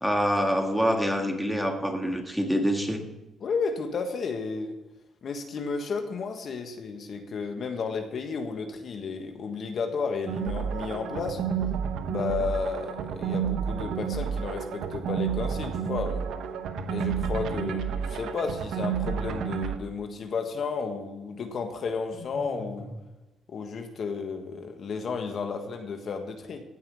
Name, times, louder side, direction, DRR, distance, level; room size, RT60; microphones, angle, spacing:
voice 1, 0.0-3.0, equal, ahead, 3 dB, 1.9 m, -26 dB
voice 2, 3.4-4.7 5.2-11.4 12.1-16.2 16.9-22.9 23.5-26.6, left 5 dB, 55° left, 5 dB, 1.5 m, -32 dB
sound 1, 10.3-19.8, right 7 dB, 75° right, 1.0 m, -30 dB
sound 2, 16.8-17.7 22.1-23.0, left 2 dB, 85° left, 5.0 m, -41 dB
16.0 x 5.6 x 6.9 m, 1.0 s
cardioid pair, 90°, 0 cm